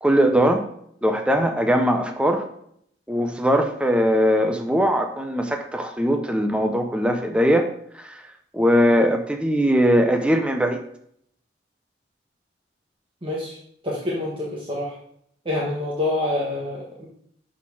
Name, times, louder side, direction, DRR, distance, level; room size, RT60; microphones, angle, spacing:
voice 1, 0.0-0.6 1.0-2.5 3.1-7.7 7.9-8.2 8.5-10.8, equal, 5° right, 4 dB, 0.6 m, -20 dB
voice 2, 13.2-13.6 13.8-14.9 15.4-17.1, left 2 dB, 30° right, -4 dB, 1.4 m, -27 dB
11.5 x 4.3 x 4.7 m, 0.69 s
head